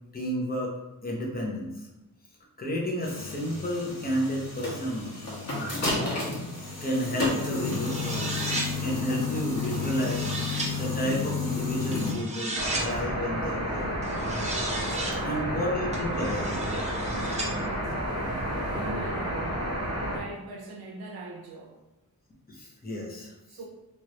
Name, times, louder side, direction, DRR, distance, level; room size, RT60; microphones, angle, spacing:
voice 1, 0.1-0.7 1.0-1.9 2.6-5.2 5.8-5.9 6.7-10.3 10.8-14.0 15.2-16.6 22.5-23.3, equal, 25° left, -2 dB, 0.8 m, -31 dB
sound 1, 3.0-12.1, left 4 dB, 45° left, 1.2 m, -31 dB
sound 2, 7.7-8.7 9.6-10.7 11.9-12.9 14.0-15.2 15.9-17.5, right 2 dB, 20° right, 0.6 m, -34 dB
sound 3, 12.5-20.2, equal, 40° right, 1.0 m, -31 dB
voice 2, 14.2-15.3 17.5-19.6 20.1-21.8 23.1-23.2 23.5-23.6, right 2 dB, 80° right, 0 dB, 0.6 m, -43 dB
3.1 x 2.5 x 3.0 m, 0.94 s
wide cardioid pair, 130°, 36 cm